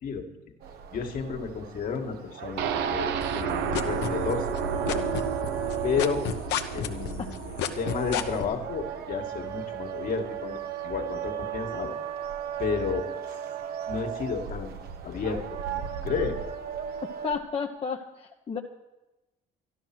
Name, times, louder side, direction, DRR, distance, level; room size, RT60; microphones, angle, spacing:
sound 1, 0.6-17.4, right 9 dB, 70° right, 1.2 m, -36 dB
voice 1, 0.9-5.1 5.8-6.3 6.7-11.9 12.6-13.1 13.9-14.8 15.0-15.4 15.7-16.4, left 5 dB, 55° left, 3 dB, 1.9 m, -32 dB
sound 2, 2.6-10.4 10.8-10.9 11.3-11.4, right 6 dB, 85° right, 0.9 m, -33 dB
sound 3, 3.2-4.6 4.9-8.4, left 10 dB, 85° left, 1.0 m, -29 dB
voice 2, 17.2-18.6, left 6 dB, 35° left, 1 dB, 0.9 m, -32 dB
12.5 x 12.0 x 6.1 m, 1.0 s
cardioid pair, 110°, 17 cm